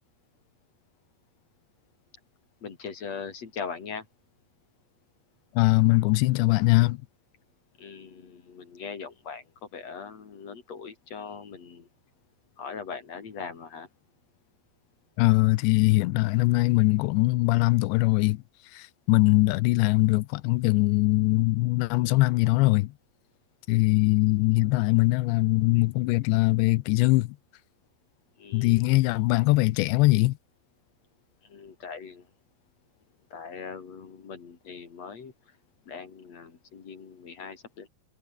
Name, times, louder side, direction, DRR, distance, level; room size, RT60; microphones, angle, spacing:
voice 1, 2.6-4.1 7.8-9.4 9.7-11.9 12.6-13.9 28.4-29.0 31.4-32.3 33.3-35.3 35.9-37.9, left 5 dB, 40° left, 3.5 m, -40 dB
voice 2, 5.6-7.0 15.2-18.4 18.7-22.9 23.7-27.4 28.5-30.4, left 21 dB, 85° left, 2.9 m, -22 dB
omnidirectional pair, 5.1 m